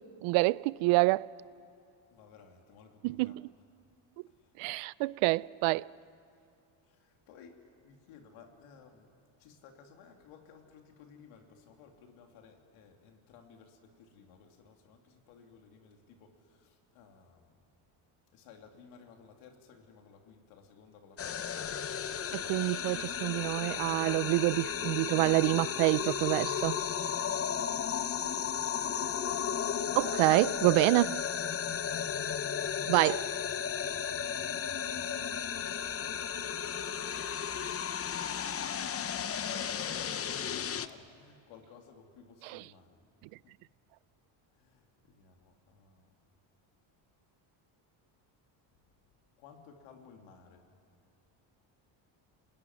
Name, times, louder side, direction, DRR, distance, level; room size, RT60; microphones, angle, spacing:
voice 1, 0.2-1.3 3.0-3.4 4.6-5.9 22.3-26.8 30.0-31.2 32.9-33.3, right 22 dB, 90° right, 0.6 m, -27 dB
voice 2, 2.1-3.5 4.3-4.8 6.8-17.6 18.3-21.9 27.5-29.6 31.9-32.7 35.0-35.8 38.0-43.0 43.4-43.5 44.5-46.1 49.4-50.7, left 6 dB, 90° left, 3.0 m, -57 dB
sound 1, 21.2-40.9, left 8 dB, 30° left, 0.8 m, -34 dB
27.5 x 20.0 x 9.6 m
cardioid pair, 130°, 48 cm